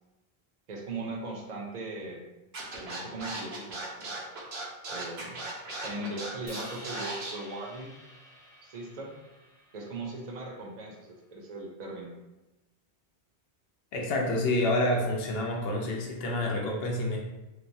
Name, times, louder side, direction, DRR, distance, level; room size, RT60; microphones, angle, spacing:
voice 1, 0.7-2.2 2.7-4.2 4.9-5.4 5.8-8.0 8.6-9.1 9.7-12.1, right 2 dB, 55° right, 0 dB, 0.6 m, -39 dB
Scratching (performance technique), 2.5-7.3, right 2 dB, 85° right, 0.9 m, -37 dB
Crash cymbal, 6.5-10.7, equal, 20° left, 0.7 m, -50 dB
voice 2, 13.9-17.2, left 1 dB, 75° left, 0 dB, 0.8 m, -28 dB
3.0 x 2.0 x 2.6 m, 1.0 s
omnidirectional pair, 1.0 m